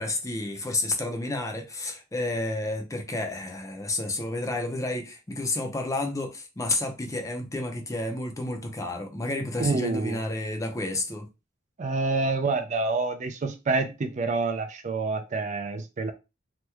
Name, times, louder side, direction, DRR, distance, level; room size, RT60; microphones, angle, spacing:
voice 1, 0.0-11.3, left 2 dB, 15° left, 0.5 m, -30 dB
voice 2, 9.6-10.2 11.8-16.1, right 3 dB, 40° right, 0.4 m, -27 dB
2.9 x 2.1 x 3.4 m
head